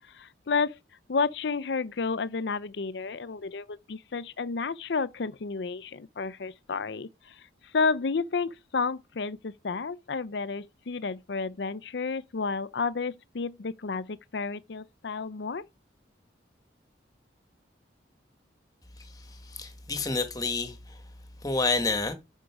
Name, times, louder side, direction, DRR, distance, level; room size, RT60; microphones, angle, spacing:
voice 1, 0.1-0.8 1.1-7.3 7.7-15.7, left 4 dB, 65° left, 0.5 m, -31 dB
voice 2, 19.5-20.8 21.4-22.1, left 3 dB, 20° left, 1.4 m, -28 dB
10.0 x 6.2 x 4.8 m
head